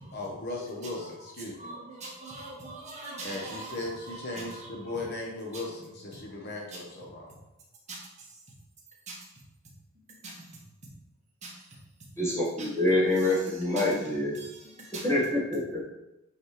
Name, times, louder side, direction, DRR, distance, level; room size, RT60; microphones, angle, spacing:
voice 1, 0.1-1.7 3.2-7.4, left 2 dB, 55° left, -2 dB, 0.9 m, -37 dB
voice 2, 0.7-1.1 1.6-4.9 5.5-5.6 6.7-6.8 7.9-8.3 9.1-9.2 10.1-10.5 11.4-11.6 12.6-12.7 13.8-13.9 14.3-15.0, right 2 dB, 35° right, -3 dB, 1.6 m, -42 dB
voice 3, 12.2-14.4 15.0-15.8, left 1 dB, 15° left, -7 dB, 1.4 m, -26 dB
7.9 x 4.1 x 3.2 m, 0.94 s
head